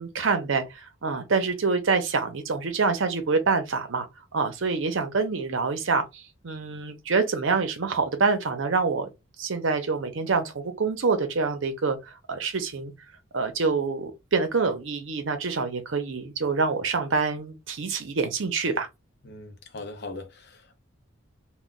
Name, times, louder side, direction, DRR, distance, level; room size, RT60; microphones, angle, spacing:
voice 1, 0.0-4.1 4.3-9.1 9.4-12.0 12.3-12.9 13.3-18.9, right 4 dB, 70° right, 0.6 m, -26 dB
voice 2, 19.2-20.8, left 2 dB, 50° left, 0.6 m, -40 dB
2.2 x 2.2 x 3.8 m
head